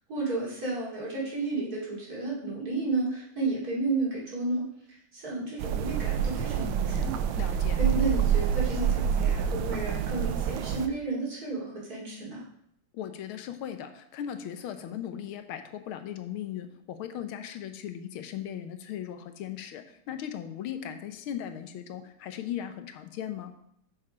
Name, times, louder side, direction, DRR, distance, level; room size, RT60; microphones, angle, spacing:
voice 1, 0.1-4.6 5.1-7.1 7.8-12.4, right 3 dB, 45° right, -5 dB, 3.2 m, -32 dB
sound 1, 5.6-10.9, right 8 dB, 85° right, 1.5 m, -27 dB
voice 2, 7.4-7.8 12.9-23.5, left 10 dB, 85° left, 8 dB, 1.7 m, -38 dB
7.1 x 6.7 x 5.0 m, 0.72 s
omnidirectional pair, 2.3 m